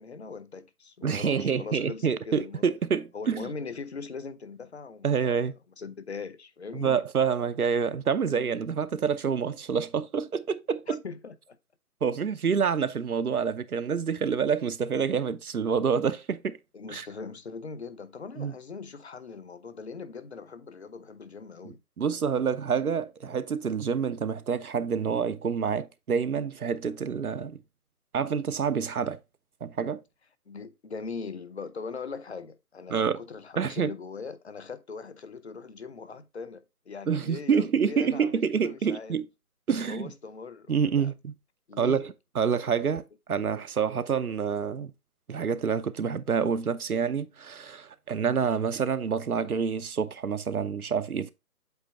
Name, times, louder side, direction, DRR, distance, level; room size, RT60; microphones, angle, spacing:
voice 1, 0.0-2.6 3.1-5.2 5.8-7.0 10.9-11.6 16.7-22.5 30.5-39.2 39.8-41.1 41.7-42.0 42.5-42.7, left 4 dB, 45° left, 0.7 m, -41 dB
voice 2, 1.0-3.5 5.0-5.5 6.7-11.0 12.0-16.6 16.9-17.1 18.4-18.5 21.6-27.6 28.1-29.2 29.6-30.0 32.9-33.2 33.6-33.9 37.1-39.3 39.7-40.1 40.7-41.3 41.8-44.9 45.3-51.3, right 6 dB, 75° right, 0.7 m, -27 dB
8.0 x 2.8 x 4.4 m
figure-of-eight pair, 155°, 45 cm